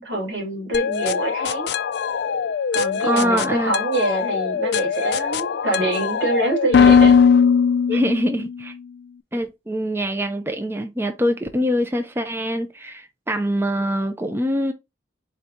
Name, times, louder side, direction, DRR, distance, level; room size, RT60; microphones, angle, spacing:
voice 1, 0.0-1.7 2.7-7.2 7.9-8.0, right 2 dB, 90° right, 2.5 m, -25 dB
sound 1, 0.7-8.5, left 6 dB, 60° left, 0.3 m, -20 dB
voice 2, 3.0-3.8 7.9-8.7 9.3-14.7, equal, 10° right, 0.5 m, -24 dB
4.5 x 2.8 x 3.7 m
head